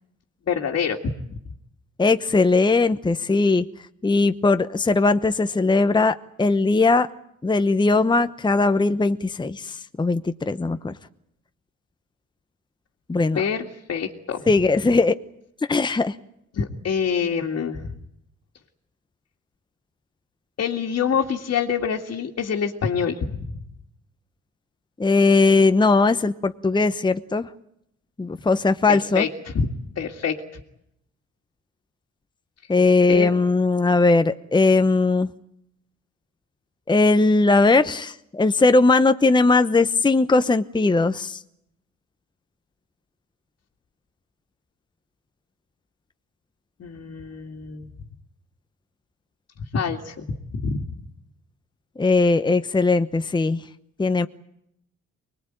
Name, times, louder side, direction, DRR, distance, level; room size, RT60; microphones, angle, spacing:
voice 1, 0.5-1.1 13.3-14.5 16.5-17.9 20.6-23.4 28.9-29.3 29.5-30.4 33.1-33.3 46.8-47.9 49.7-50.9, left 6 dB, 55° left, 0 dB, 2.2 m, -26 dB
voice 2, 2.0-3.6 4.0-7.1 7.4-10.9 13.1-13.4 14.5-15.1 15.7-16.1 25.0-27.5 28.2-29.2 32.7-35.3 36.9-41.4 52.0-53.6 54.0-54.3, left 3 dB, 15° left, 10 dB, 0.9 m, -19 dB
24.5 x 20.5 x 9.1 m, 0.76 s
cardioid pair, 90°, 30 cm